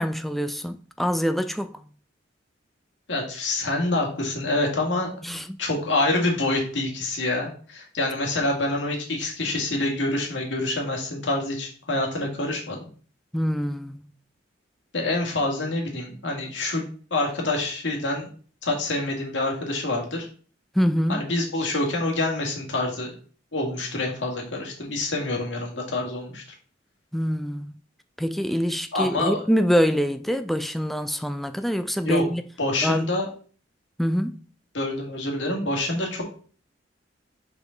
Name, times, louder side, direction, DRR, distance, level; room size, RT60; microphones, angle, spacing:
voice 1, 0.0-1.7 5.2-5.6 13.3-14.0 20.8-21.3 27.1-27.7 28.2-32.5 32.8-33.1 34.0-34.4, equal, ahead, 0.3 m, -25 dB
voice 2, 3.1-5.1 5.6-12.9 14.9-16.8 17.1-18.3 18.6-20.3 21.1-23.1 23.5-26.4 28.9-29.4 32.0-32.2 32.6-33.3 34.7-36.2, left 2 dB, 75° left, 2.0 m, -26 dB
5.3 x 4.9 x 3.9 m
head